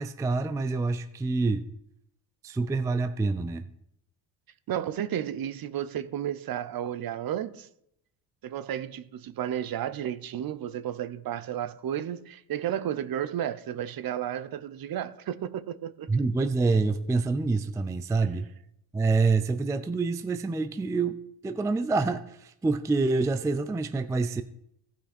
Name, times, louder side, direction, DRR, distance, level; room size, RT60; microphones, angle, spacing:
voice 1, 0.0-1.7 2.4-3.7 16.1-18.5 18.9-21.2 21.4-24.4, right 3 dB, 10° right, 0.3 m, -26 dB
voice 2, 4.7-7.7 8.4-16.1, right 10 dB, 50° right, 0.7 m, -32 dB
15.0 x 5.7 x 4.2 m
cardioid pair, 95°, 47 cm